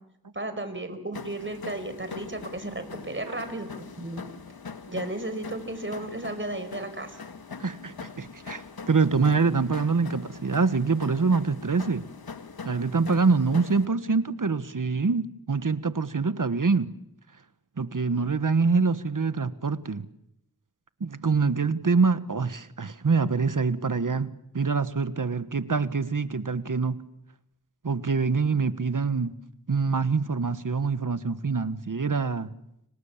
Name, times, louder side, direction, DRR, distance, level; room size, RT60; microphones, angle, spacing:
voice 1, 0.3-4.3 4.9-7.2, right 1 dB, 35° right, 5.3 m, -34 dB
sound 1, 1.1-13.9, left 5 dB, 80° left, 1.8 m, -42 dB
voice 2, 7.6-12.1 12.6-16.9 17.8-20.1 21.0-24.3 24.5-27.0 27.8-29.3 29.7-32.5, right 4 dB, 60° right, 1.5 m, -25 dB
30.0 x 25.5 x 7.4 m
wide cardioid pair, 50°, 36 cm